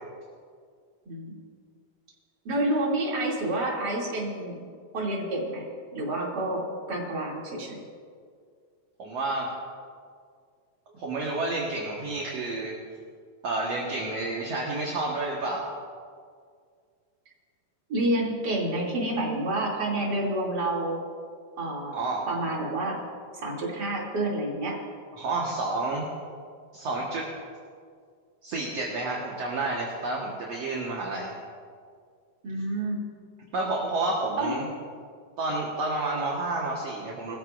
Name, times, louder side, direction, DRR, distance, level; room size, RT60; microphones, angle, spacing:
voice 1, 1.1-1.4 2.4-4.6 4.9-5.7 5.9-7.8 17.9-21.0 21.6-23.0 23.4-24.8 32.4-33.0 34.4-34.6, right 1 dB, 30° right, -4 dB, 3.0 m, -29 dB
voice 2, 9.0-9.5 10.9-12.7 13.4-15.7 21.9-22.2 25.1-26.0 26.7-27.3 28.4-31.3 33.5-34.7 35.4-37.4, right 2 dB, 55° right, -3 dB, 2.3 m, -30 dB
22.0 x 14.5 x 2.6 m, 2.1 s
omnidirectional pair, 3.8 m